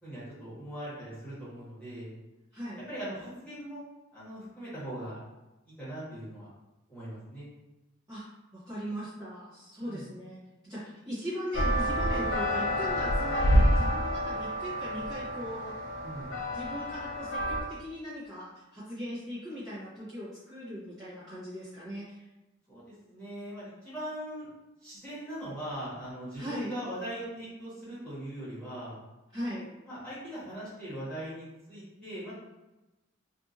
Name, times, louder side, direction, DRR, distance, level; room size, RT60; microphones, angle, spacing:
voice 1, 0.0-2.1 2.9-3.8 4.1-5.2 5.6-6.5 6.9-7.5 9.8-10.0 16.0-16.4 22.7-24.5 24.8-29.0 29.8-32.3, right 1 dB, 5° left, -11 dB, 1.3 m, -40 dB
voice 2, 2.5-2.9 8.1-8.2 8.5-10.4 10.6-15.7 16.5-22.2 26.4-26.7 29.3-29.7, equal, 20° right, -13 dB, 0.9 m, -39 dB
sound 1, 11.5-17.6, equal, 65° left, 0.4 m, -28 dB
2.6 x 2.6 x 2.5 m, 1.0 s
head